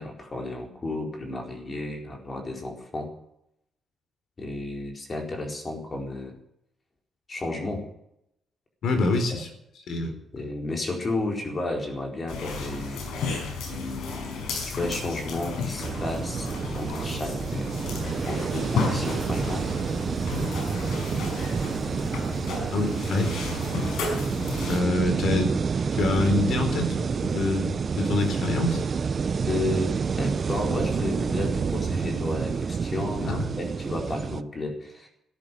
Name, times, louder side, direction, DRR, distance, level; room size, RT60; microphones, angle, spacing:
voice 1, 0.0-3.1 4.4-6.3 7.3-7.8 10.3-13.0 13.6-14.5 14.8-17.7 18.3-19.7 29.5-35.1, left 2 dB, 30° left, 2 dB, 4.3 m, -32 dB
voice 2, 8.8-9.5 9.9-10.2 22.7-23.3 24.7-25.6 26.0-28.8 33.3-33.6, left 2 dB, 65° left, 7 dB, 4.0 m, -25 dB
sound 1, 12.3-24.8, left 4 dB, 85° left, 5.1 m, -33 dB
sound 2, 15.8-34.4, right 5 dB, 40° right, 0.6 m, -29 dB
14.0 x 10.5 x 9.3 m, 0.80 s
cardioid pair, 125°, 0 cm